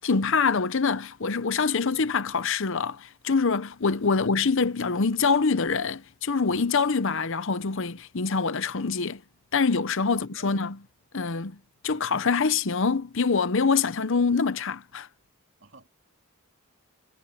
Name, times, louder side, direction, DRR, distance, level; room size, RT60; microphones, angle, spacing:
voice 1, 0.0-9.2 9.5-10.8 11.1-11.6 11.8-15.1, left 5 dB, 60° left, 0.8 m, -25 dB
voice 2, 10.0-10.7 11.9-12.4 15.6-15.9, right 3 dB, 60° right, 2.6 m, -50 dB
head